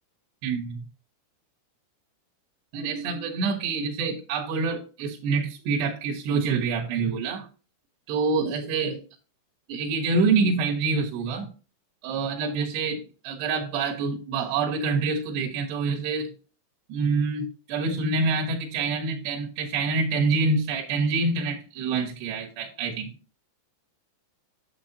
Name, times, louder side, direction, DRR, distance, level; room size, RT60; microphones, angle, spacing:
voice 1, 0.4-0.8 2.7-7.5 8.1-9.1 9.7-11.5 12.0-16.3 16.9-23.1, right 4 dB, 70° right, -1 dB, 3.2 m, -26 dB
10.0 x 7.5 x 2.8 m, 0.34 s
omnidirectional pair, 5.5 m